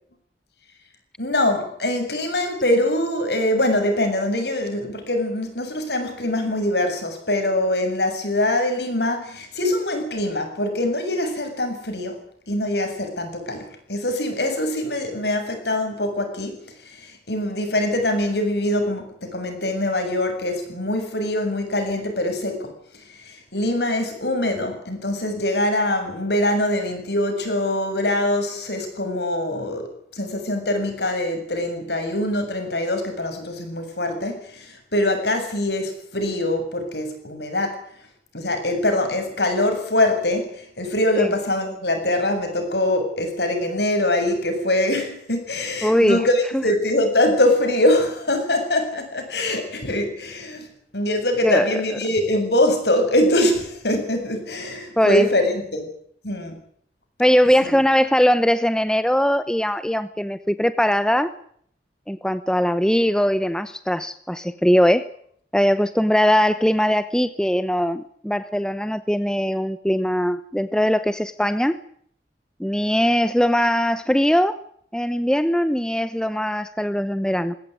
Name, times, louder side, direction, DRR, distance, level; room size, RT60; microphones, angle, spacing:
voice 1, 1.2-12.2 12.5-22.7 23.1-37.8 38.3-50.7 50.9-55.9 56.2-56.6 57.6-57.8, left 1 dB, 70° left, 6 dB, 7.2 m, -23 dB
voice 2, 45.8-46.2 46.5-46.6 51.4-51.7 55.0-55.3 57.2-61.3 62.1-65.1 65.5-71.8 72.6-74.6 74.9-77.6, equal, 5° left, 12 dB, 0.9 m, -20 dB
21.5 x 17.0 x 9.6 m, 0.64 s
head